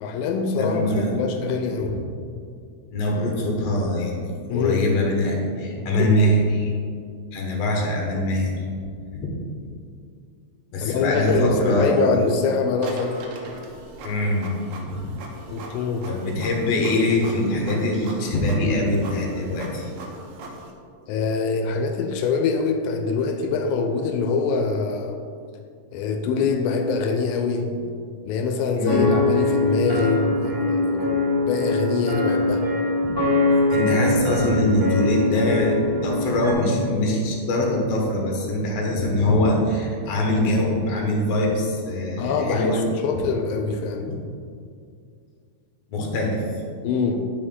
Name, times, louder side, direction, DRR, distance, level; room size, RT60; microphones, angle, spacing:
voice 1, 0.0-2.0 4.5-4.8 5.8-6.1 10.8-13.2 15.5-16.1 21.1-25.2 25.9-27.7 28.3-32.7 42.2-44.1 46.8-47.3, left 4 dB, 90° left, 4 dB, 2.0 m, -24 dB
voice 2, 0.6-1.3 2.9-6.7 7.3-8.5 9.1-9.4 10.7-12.1 14.0-14.5 14.8-15.1 16.1-19.9 28.7-29.0 33.5-42.8 45.9-46.4, left 1 dB, 65° left, -1 dB, 2.2 m, -23 dB
Printer, 12.8-20.7, right 2 dB, 80° right, 2.2 m, -40 dB
sound 1, 28.9-36.5, left 2 dB, 25° right, 1.4 m, -22 dB
9.0 x 4.8 x 3.7 m, 2.3 s
omnidirectional pair, 3.3 m